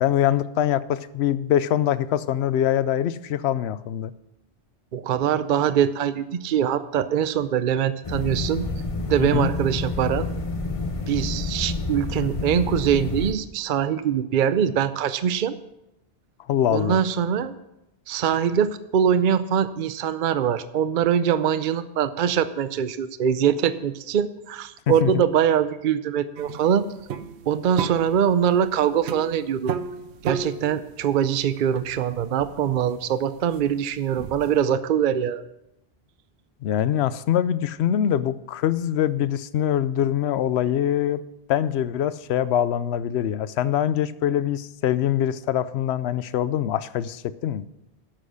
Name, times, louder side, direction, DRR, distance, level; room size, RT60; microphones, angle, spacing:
voice 1, 0.0-4.1 9.2-9.5 16.5-17.0 24.9-25.2 36.6-41.2 41.5-47.6, left 10 dB, 75° left, 16 dB, 0.8 m, -23 dB
voice 2, 4.9-8.6 9.1-10.3 11.1-15.6 16.7-17.5 18.1-26.8 27.5-29.7 30.2-35.4, right 8 dB, 55° right, 13 dB, 0.7 m, -23 dB
sound 1, 8.0-13.3, left 3 dB, 35° left, 0.8 m, -29 dB
sound 2, 26.4-34.6, right 7 dB, 80° right, 0.9 m, -34 dB
11.5 x 7.6 x 6.3 m, 0.88 s
omnidirectional pair, 1.1 m